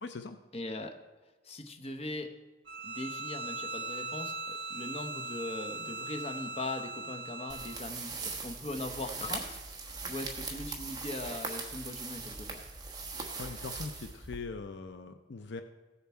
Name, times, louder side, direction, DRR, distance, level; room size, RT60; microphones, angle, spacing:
voice 1, 0.0-0.4 13.3-15.6, left 4 dB, 65° left, 8 dB, 0.6 m, -41 dB
voice 2, 0.5-0.9 1.4-2.3 2.8-9.6 10.1-12.6, left 2 dB, 30° left, 5 dB, 0.9 m, -40 dB
Bowed string instrument, 2.7-7.9, right 2 dB, 70° right, 1.1 m, -40 dB
sound 1, 7.5-14.6, right 4 dB, 20° right, 1.2 m, -40 dB
16.0 x 7.0 x 4.4 m, 1.2 s
head